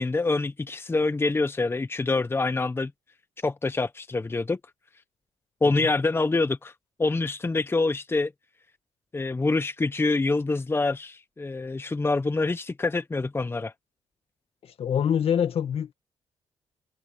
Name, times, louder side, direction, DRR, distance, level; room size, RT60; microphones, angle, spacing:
voice 1, 0.0-2.9 3.4-4.6 5.6-6.7 7.0-8.3 9.1-13.7, left 3 dB, 20° left, 1.0 m, -26 dB
voice 2, 14.8-15.9, left 8 dB, 60° left, 2.2 m, -25 dB
cardioid pair, 80°, 11 cm